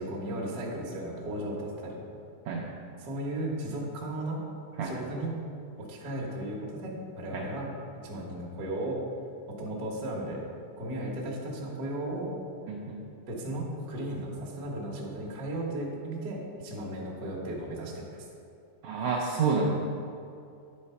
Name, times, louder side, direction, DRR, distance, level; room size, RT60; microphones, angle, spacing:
voice 1, 0.0-2.0 3.0-4.4 4.8-5.4 5.8-7.7 8.0-9.0 9.6-10.4 10.8-12.3 13.3-18.2, right 1 dB, 65° right, -3 dB, 0.9 m, -35 dB
voice 2, 12.7-13.0 18.8-19.7, right 5 dB, 90° right, -2 dB, 1.5 m, -29 dB
9.6 x 4.2 x 5.6 m, 2.5 s
omnidirectional pair, 4.0 m